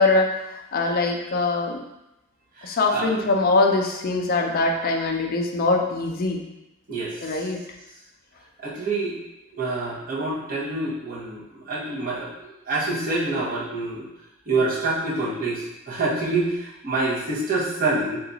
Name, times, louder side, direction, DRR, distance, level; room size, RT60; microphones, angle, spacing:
voice 1, 0.0-1.8 2.6-6.4 7.2-7.6, left 3 dB, 45° left, 2 dB, 0.4 m, -22 dB
voice 2, 2.6-3.1 6.9-7.4 8.6-9.2 9.6-14.1 14.5-18.2, right 2 dB, 45° right, -6 dB, 0.9 m, -27 dB
2.8 x 2.3 x 3.8 m, 0.92 s
head